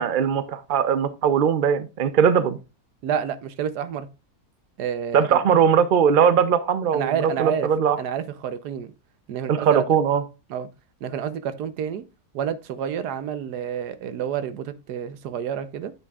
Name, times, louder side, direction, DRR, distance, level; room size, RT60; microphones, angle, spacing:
voice 1, 0.0-2.6 5.1-8.0 9.5-10.2, right 7 dB, 60° right, 0.5 m, -20 dB
voice 2, 3.0-4.1 4.8-5.4 6.9-7.7 8.0-8.9 9.3-9.8 10.5-10.7 11.0-12.0 12.3-15.9, right 8 dB, 85° right, 1.3 m, -29 dB
9.1 x 6.0 x 2.4 m
omnidirectional pair, 1.7 m